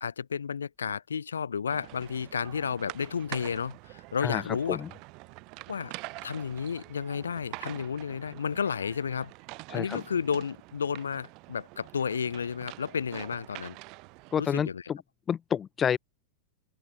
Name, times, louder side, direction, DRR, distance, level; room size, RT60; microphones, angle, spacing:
voice 1, 0.0-4.8 5.7-5.9 6.2-9.3 9.7-13.8 14.4-14.8, left 6 dB, 70° left, 2.3 m, -32 dB
sound 1, 1.7-14.5, right 27 dB, 40° right, 4.7 m, -46 dB
voice 2, 9.7-10.0 14.3-15.0 15.3-16.0, left 8 dB, 25° left, 2.0 m, -29 dB
open air
figure-of-eight pair, 90°, 0 cm